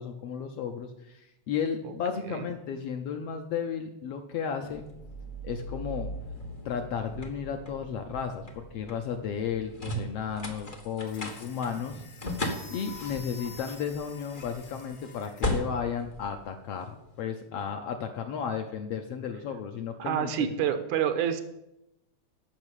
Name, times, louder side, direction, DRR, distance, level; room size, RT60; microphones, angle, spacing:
voice 1, 0.0-4.8 5.4-6.1 6.6-12.0 12.7-20.3, left 7 dB, 70° left, 5 dB, 1.6 m, -34 dB
sound 1, 4.7-17.1, left 1 dB, 85° left, 0.4 m, -38 dB
sound 2, 11.0-15.6, left 3 dB, 45° left, 1.1 m, -50 dB
voice 2, 20.0-21.4, right 9 dB, 80° right, 9 dB, 2.2 m, -28 dB
10.5 x 6.0 x 8.2 m, 0.87 s
omnidirectional pair, 3.4 m